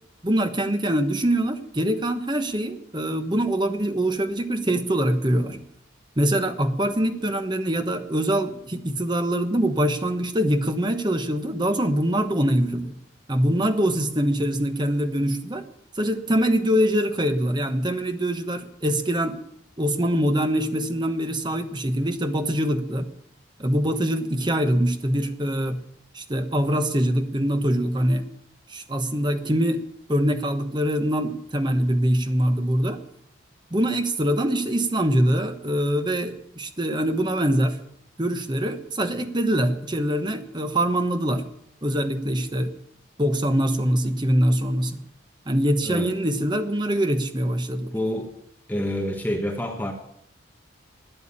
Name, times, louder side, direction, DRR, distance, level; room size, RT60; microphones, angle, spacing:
voice 1, 0.2-5.6 6.2-13.0 13.3-15.6 15.9-19.4 19.8-23.1 23.6-25.8 26.1-28.3 28.7-29.8 30.1-33.0 33.7-37.8 38.2-41.4 41.8-42.7 43.2-45.0 45.5-47.9, equal, 20° right, 8 dB, 1.1 m, -23 dB
voice 2, 47.9-48.3 48.7-49.9, left 1 dB, 10° left, 3 dB, 1.2 m, -27 dB
12.5 x 9.3 x 8.9 m, 0.73 s
head